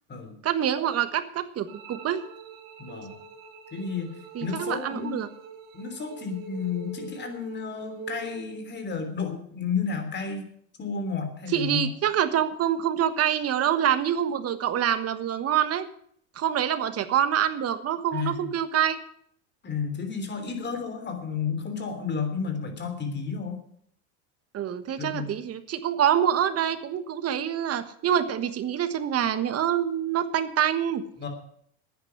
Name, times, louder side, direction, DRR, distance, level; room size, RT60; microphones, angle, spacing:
voice 1, 0.4-2.2 4.3-5.3 11.5-15.9 16.4-19.0 24.5-31.0, right 9 dB, 35° right, 11 dB, 1.4 m, -26 dB
sound 1, 1.7-8.7, right 5 dB, 55° right, 3.1 m, -44 dB
voice 2, 2.8-3.2 3.7-5.2 5.7-10.4 10.8-11.9 18.1-18.5 19.6-23.6 25.0-25.3 31.2-31.3, left 5 dB, 25° left, 6 dB, 3.3 m, -32 dB
10.5 x 9.4 x 9.5 m, 0.64 s
supercardioid pair, 120°, 40 cm